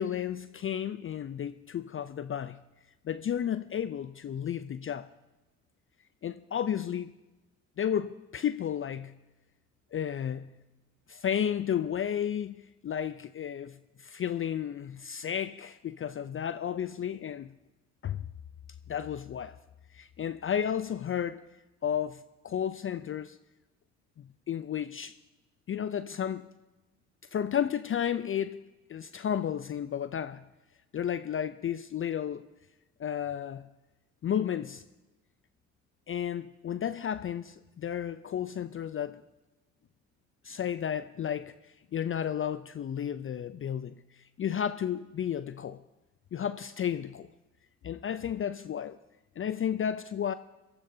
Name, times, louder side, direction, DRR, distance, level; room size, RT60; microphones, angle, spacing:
voice 1, 0.0-2.6 3.0-5.1 6.2-7.1 7.8-9.2 9.9-10.5 11.1-17.5 18.0-18.3 18.9-19.6 19.9-21.5 21.8-23.4 24.2-25.2 25.7-26.5 27.3-28.6 28.9-30.4 30.9-32.4 33.0-33.7 34.2-34.8 36.1-39.2 40.4-41.5 41.9-44.0 44.4-45.8 46.3-47.3 47.8-49.0 49.4-50.3, left 9 dB, 35° left, 0.5 m, -32 dB
22.5 x 13.5 x 2.8 m
hypercardioid pair, 50°, 38 cm